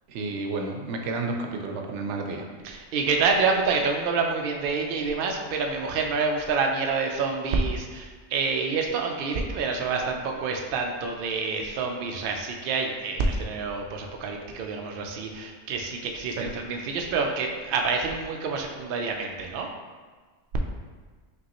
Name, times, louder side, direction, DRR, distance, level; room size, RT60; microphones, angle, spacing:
voice 1, 0.1-2.5 16.4-16.5, right 3 dB, 90° right, 3 dB, 0.9 m, -31 dB
voice 2, 2.6-19.7, right 4 dB, 60° right, 2 dB, 0.7 m, -27 dB
5.3 x 3.0 x 2.9 m, 1.4 s
omnidirectional pair, 1.2 m